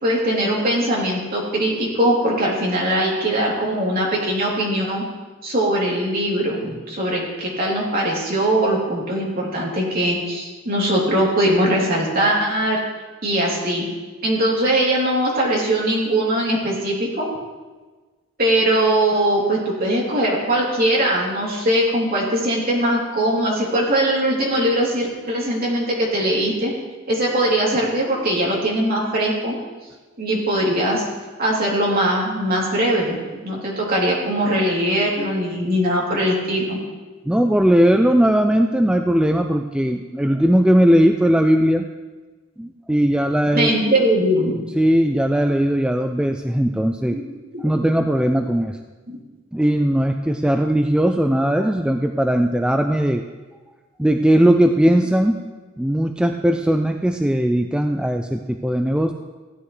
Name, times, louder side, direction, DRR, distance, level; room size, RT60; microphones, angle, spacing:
voice 1, 0.0-5.0 5.4-12.8 13.2-13.9 14.2-17.3 18.4-26.7 27.1-29.5 30.2-31.1 31.4-36.8 43.5-44.5 47.1-47.2 47.5-47.6 49.1-49.2, right 1 dB, 50° right, -4 dB, 3.1 m, -21 dB
voice 2, 37.3-41.9 42.6-43.7 44.8-47.2 47.6-48.8 49.5-53.2 54.0-55.5 55.8-59.1, equal, 5° right, 5 dB, 0.3 m, -18 dB
15.5 x 10.5 x 3.2 m, 1.3 s
head